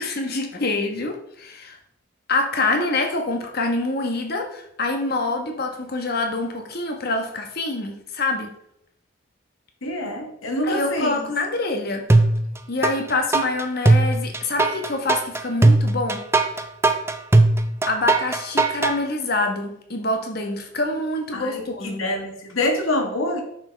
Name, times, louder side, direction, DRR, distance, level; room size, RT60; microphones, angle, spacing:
voice 1, 0.0-1.8 2.3-8.5 10.6-12.0 12.7-16.2 17.8-22.0, left 2 dB, 50° left, 4 dB, 1.2 m, -26 dB
voice 2, 9.8-11.2 21.3-23.4, left 1 dB, 85° left, 3 dB, 1.6 m, -26 dB
sound 1, 12.1-12.9 13.3-19.0, right 2 dB, 15° right, 0.4 m, -18 dB
9.6 x 6.5 x 3.4 m, 0.75 s
head